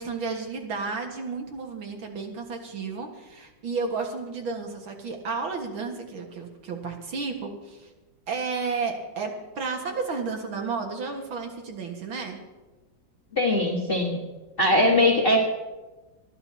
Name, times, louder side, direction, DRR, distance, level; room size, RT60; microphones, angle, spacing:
voice 1, 0.0-7.9 8.3-12.4 14.7-15.0, right 4 dB, 85° right, 2 dB, 2.5 m, -32 dB
voice 2, 13.3-14.2 14.6-15.4, left 1 dB, 30° left, -2 dB, 1.6 m, -21 dB
28.5 x 11.0 x 2.9 m, 1.2 s
omnidirectional pair, 2.2 m